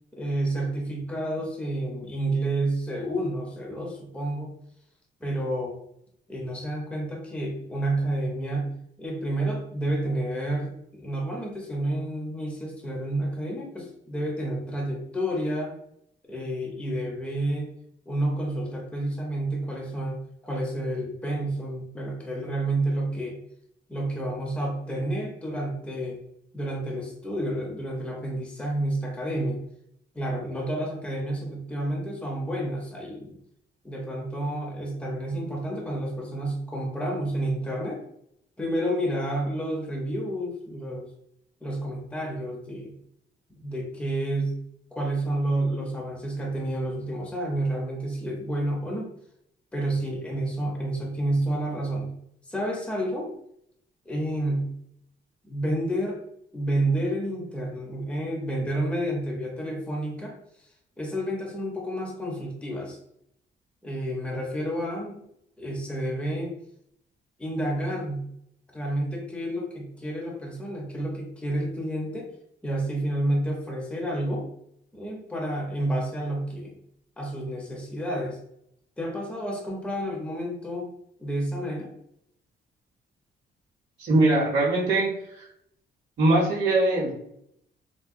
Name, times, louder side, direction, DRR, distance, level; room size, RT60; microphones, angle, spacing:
voice 1, 0.1-4.5 5.2-5.8 6.3-8.7 9.0-15.7 16.3-17.7 18.1-23.4 23.9-26.2 26.5-29.6 30.1-33.4 33.8-38.0 38.6-41.1 41.6-42.9 43.6-44.5 44.9-49.1 49.7-52.1 52.5-53.3 54.1-54.7 55.4-56.2 56.5-60.4 61.0-63.0 63.8-65.2 65.6-66.5 67.4-68.2 68.7-72.3 72.6-74.5 74.9-76.7 77.2-78.4 79.0-80.9 81.2-81.9, right 1 dB, 5° left, -1 dB, 0.5 m, -30 dB
voice 2, 84.0-85.1 85.4-85.5 86.2-87.1, right 2 dB, 45° right, -6 dB, 0.7 m, -21 dB
3.6 x 2.1 x 2.4 m, 0.72 s
cardioid pair, 165°, 19 cm